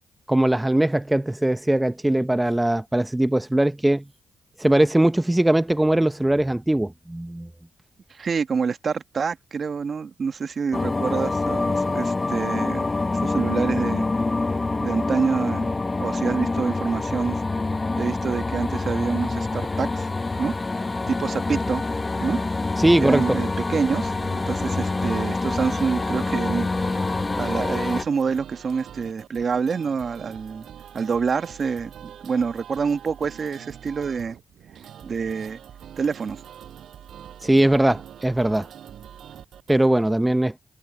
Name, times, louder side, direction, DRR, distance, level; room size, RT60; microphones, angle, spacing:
voice 1, 0.3-4.0 4.6-7.5 22.8-23.4 37.4-38.7 39.7-40.5, right 1 dB, 10° right, 0.6 m, -20 dB
voice 2, 8.1-12.8 13.2-14.1 14.8-15.7 16.0-17.4 18.0-20.1 20.4-20.5 21.1-21.8 22.2-22.4 23.0-26.7 27.4-30.7 30.9-34.4 35.0-35.6 36.0-36.4, right 5 dB, 55° right, 1.3 m, -26 dB
sound 1, 10.7-28.1, left 3 dB, 30° left, 0.9 m, -26 dB
sound 2, 23.1-39.8, right 9 dB, 75° right, 7.6 m, -44 dB
cardioid pair, 65°, 0 cm